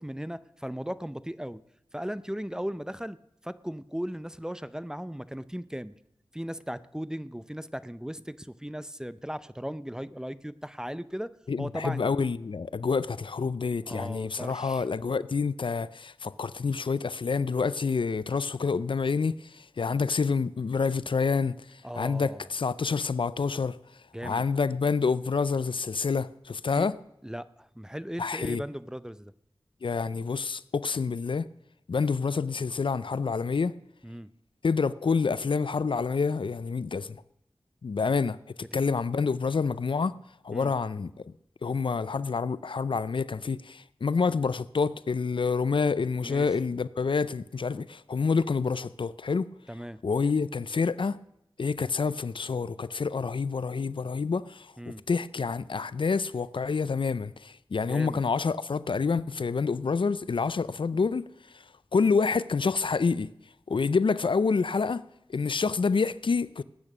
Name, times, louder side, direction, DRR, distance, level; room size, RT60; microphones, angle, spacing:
voice 1, 0.0-1.6 1.9-3.2 3.4-5.9 6.3-12.1 13.9-14.8 21.8-22.5 24.1-24.4 26.8-26.9 27.2-29.3 34.0-34.3 40.5-40.7 46.2-46.5 49.7-50.0 54.8-55.0 57.9-58.2, equal, 5° right, 0.5 m, -37 dB
voice 2, 11.5-23.8 24.2-27.0 28.2-28.6 29.8-31.5 31.9-33.7 34.6-37.2 37.8-40.1 40.4-41.3 41.6-49.5 50.0-51.2 51.6-61.3 61.5-61.6 61.9-63.3 63.7-65.0 65.3-66.6, left 5 dB, 70° left, 0.4 m, -28 dB
19.0 x 8.7 x 6.1 m
wide cardioid pair, 65°, 9 cm